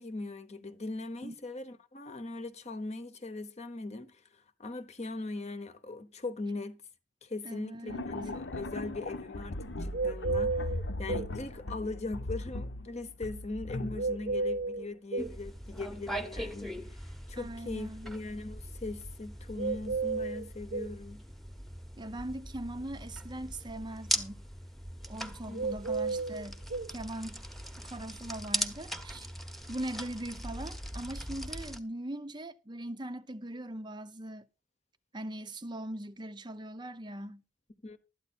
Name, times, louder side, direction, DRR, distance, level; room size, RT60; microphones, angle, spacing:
voice 1, 0.0-6.8 7.2-17.0 17.3-21.2 25.5-25.8 37.8-38.0, left 2 dB, 35° left, 1.0 m, -40 dB
voice 2, 7.4-8.1 17.4-18.1 22.0-24.4 25.1-26.6 26.9-27.4 27.8-29.3 29.7-34.5 35.1-37.4, right 1 dB, 25° right, 0.6 m, -40 dB
sound 1, 7.9-14.8, left 2 dB, 65° left, 0.9 m, -38 dB
sound 2, 9.9-11.3 13.9-15.3 19.6-21.0 25.5-26.9, right 3 dB, 60° right, 0.9 m, -32 dB
sound 3, 15.2-31.8, equal, ahead, 1.0 m, -40 dB
12.5 x 9.5 x 4.3 m
head